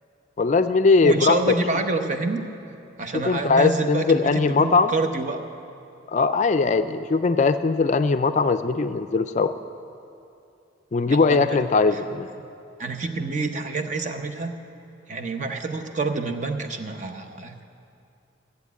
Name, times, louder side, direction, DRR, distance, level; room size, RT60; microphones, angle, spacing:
voice 1, 0.4-1.6 3.1-4.9 6.1-9.5 10.9-12.3, left 4 dB, 40° left, 10 dB, 0.3 m, -20 dB
voice 2, 1.0-2.4 3.0-5.4 11.1-11.6 11.9-12.0 12.8-14.5 15.1-17.6, right 3 dB, 40° right, 6 dB, 0.8 m, -27 dB
14.5 x 8.1 x 8.2 m, 2.6 s
head